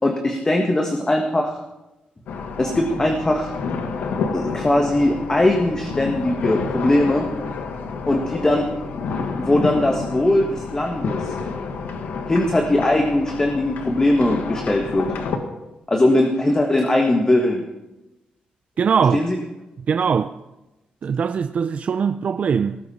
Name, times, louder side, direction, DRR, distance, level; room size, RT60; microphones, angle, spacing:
voice 1, 0.0-1.6 2.6-3.5 4.3-7.3 8.1-8.6 9.4-11.3 12.3-15.1 15.9-17.6 19.1-19.4, left 1 dB, 20° left, 1.5 m, -20 dB
sound 1, 2.3-15.4, left 5 dB, 85° left, 1.8 m, -29 dB
voice 2, 18.8-19.2 19.9-20.4 21.0-22.8, right 6 dB, 50° right, 0.5 m, -21 dB
19.0 x 14.0 x 4.3 m
cardioid pair, 105°, 3 cm